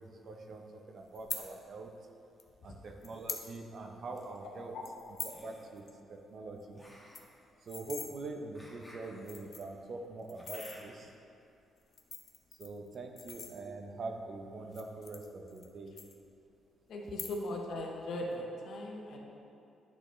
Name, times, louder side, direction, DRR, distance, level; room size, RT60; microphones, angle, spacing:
voice 1, 0.0-1.9 2.6-4.8 5.2-6.8 7.6-11.1 12.6-16.0, right 3 dB, 55° right, 3 dB, 0.7 m, -44 dB
sound 1, 1.1-1.4 2.4-2.5 3.0-3.5 3.8-3.9 4.2-4.4 4.8-5.4 5.8-5.9 6.2-6.3 6.6-6.7 6.9-8.1 8.8-8.9 9.2-9.8 10.3-10.8 11.8-13.9 14.6-15.7 16.0-16.6 17.0-17.6 17.9-18.3, left 5 dB, 50° left, 0.6 m, -43 dB
sound 2, 3.8-4.3 5.2-5.8 6.7-11.1, equal, 5° left, 1.4 m, -57 dB
voice 2, 4.4-4.8 16.9-19.2, left 1 dB, 65° left, -1 dB, 1.0 m, -39 dB
10.0 x 4.2 x 3.1 m, 2.6 s
cardioid pair, 90°, 0 cm